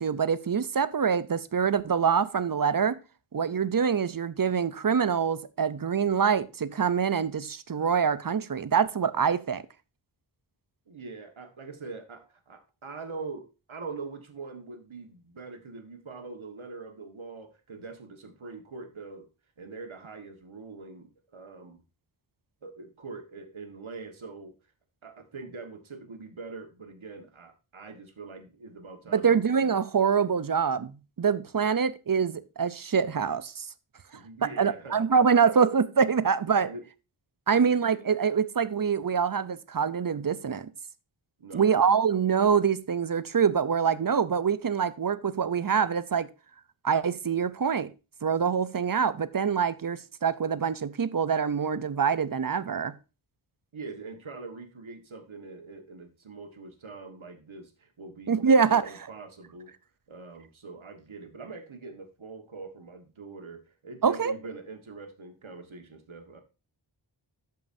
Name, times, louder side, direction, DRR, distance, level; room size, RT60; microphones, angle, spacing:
voice 1, 0.0-3.0 3.3-9.6 29.1-33.7 34.6-36.7 37.5-40.7 41.5-46.3 46.8-47.9 48.2-53.0 58.3-58.8 64.0-64.3, right 6 dB, 45° right, 0.6 m, -25 dB
voice 2, 10.9-19.3 19.6-21.8 22.6-24.6 25.0-29.4 34.1-35.4 36.6-36.9 37.5-37.9 41.4-41.8 53.7-59.7 60.1-66.4, right 4 dB, 75° right, 1.7 m, -43 dB
13.0 x 5.6 x 2.7 m
wide cardioid pair, 60°, 49 cm